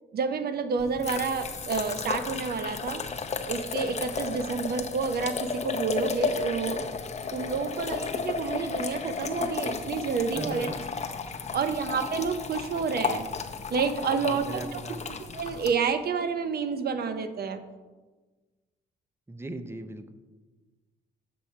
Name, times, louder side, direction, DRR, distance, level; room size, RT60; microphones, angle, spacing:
voice 1, 0.1-3.0 3.5-6.9 7.3-10.7 11.5-13.2 13.7-14.8 15.3-17.6, right 5 dB, 50° right, 10 dB, 0.7 m, -29 dB
sound 1, 0.8-15.7, left 5 dB, 35° left, 0.7 m, -33 dB
voice 2, 10.3-10.9 14.1-15.1 19.3-20.1, right 1 dB, 10° right, 10 dB, 0.6 m, -39 dB
7.0 x 6.5 x 4.3 m, 1.3 s
cardioid pair, 90°, 20 cm